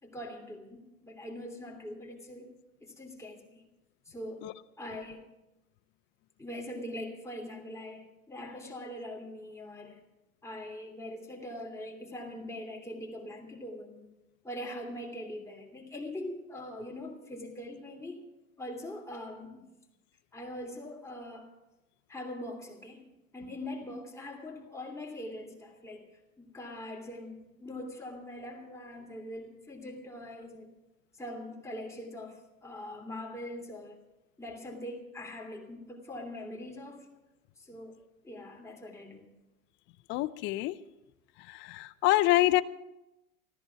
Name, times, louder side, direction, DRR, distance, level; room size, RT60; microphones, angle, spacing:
voice 1, 0.0-2.5 2.8-3.6 4.1-4.5 4.8-5.2 6.4-10.0 10.4-14.1 14.4-18.2 18.6-19.7 20.3-21.5 22.1-23.1 23.3-26.1 26.4-30.7 31.2-34.0 34.4-37.1 37.6-38.0 38.2-39.2, left 1 dB, 5° left, 0 dB, 2.9 m, -42 dB
voice 2, 40.1-40.7 41.7-42.6, left 17 dB, 25° left, 17 dB, 0.5 m, -25 dB
14.5 x 14.0 x 5.8 m, 0.97 s
hypercardioid pair, 100°, 43 cm